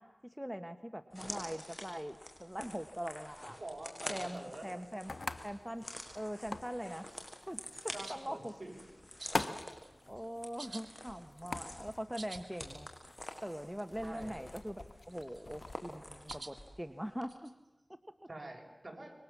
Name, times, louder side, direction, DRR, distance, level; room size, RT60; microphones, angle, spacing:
voice 1, 0.0-3.6 4.1-5.1 5.4-7.1 7.5-8.5 10.1-12.9 13.4-17.5, equal, 5° right, 8 dB, 1.3 m, -42 dB
sound 1, 1.1-16.8 17.1-17.2, left 1 dB, 25° left, 6.4 m, -48 dB
voice 2, 3.6-4.7 7.9-8.7 14.0-14.4 18.3-19.1, right 1 dB, 45° right, 2 dB, 7.2 m, -46 dB
sound 2, 3.9-16.4, left 3 dB, 75° left, 1.4 m, -46 dB
sound 3, 8.0-8.3 9.2-9.5 9.8-10.3 10.5-11.6 11.9-12.4 12.8-12.9 13.0-13.1 13.5-13.9 14.2-14.6 15.1-15.7 16.3-16.5 17.3-17.5, right 3 dB, 80° right, 3.1 m, -50 dB
28.0 x 23.5 x 7.5 m, 1.1 s
wide cardioid pair, 40°, 0 cm